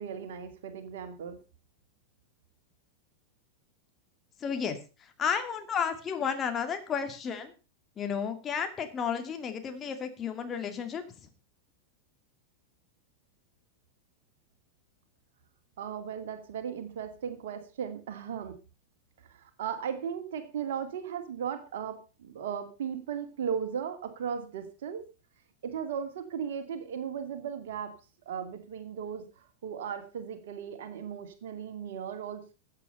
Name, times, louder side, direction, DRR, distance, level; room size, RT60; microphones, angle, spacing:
voice 1, 0.0-1.4 15.8-18.6 19.3-25.0 25.6-27.9 28.3-32.5, right 7 dB, 55° right, 7 dB, 2.4 m, -36 dB
voice 2, 4.4-4.8 5.2-7.5 8.0-11.0, left 7 dB, 25° left, 6 dB, 2.3 m, -32 dB
15.0 x 8.5 x 5.5 m, 0.33 s
figure-of-eight pair, 90°, 0 cm